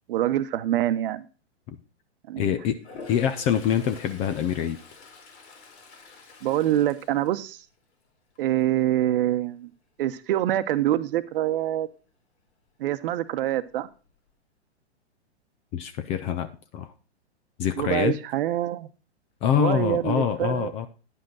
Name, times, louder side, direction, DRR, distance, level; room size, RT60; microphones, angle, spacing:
voice 1, 0.1-1.2 2.3-2.4 6.4-7.6 8.4-9.7 10.0-11.9 12.8-13.9 17.8-18.9 19.5-20.7, right 13 dB, 50° right, 0.9 m, -25 dB
voice 2, 2.4-2.8 3.1-4.8 15.7-16.9 17.6-18.1 19.4-20.9, left 9 dB, 20° left, 0.4 m, -25 dB
Toilet flush, 2.7-7.9 8.3-8.7 13.2-13.3 13.6-14.3, left 4 dB, 70° left, 3.1 m, -47 dB
10.0 x 5.2 x 6.0 m
hypercardioid pair, 125°, 34 cm